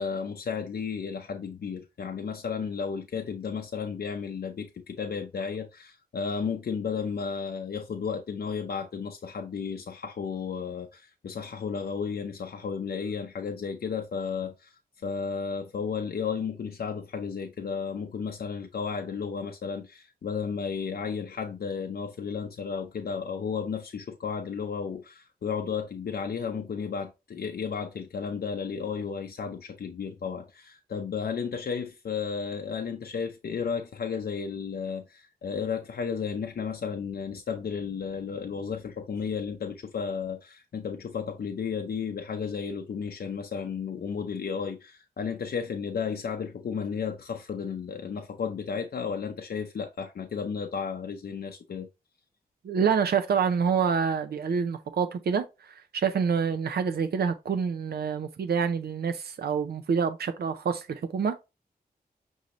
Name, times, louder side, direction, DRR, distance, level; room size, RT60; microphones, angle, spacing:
voice 1, 0.0-14.7 15.0-51.9, left 6 dB, 75° left, 0.6 m, -33 dB
voice 2, 52.6-61.4, right 6 dB, 75° right, 0.5 m, -27 dB
6.2 x 2.7 x 2.9 m
wide cardioid pair, 80°, 16 cm